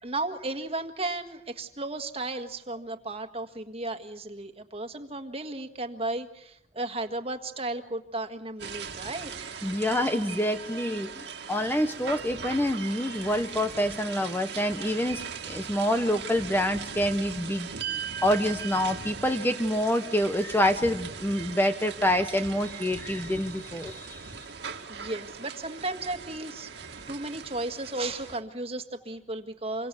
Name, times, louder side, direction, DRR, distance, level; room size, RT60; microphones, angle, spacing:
voice 1, 0.0-9.4 24.9-29.9, right 2 dB, 35° right, 8 dB, 1.7 m, -34 dB
sound 1, 8.6-28.4, right 6 dB, 70° right, 2.0 m, -39 dB
voice 2, 9.6-17.7 18.2-24.1, left 1 dB, 10° left, 8 dB, 0.9 m, -27 dB
27.0 x 24.0 x 7.0 m, 0.76 s
head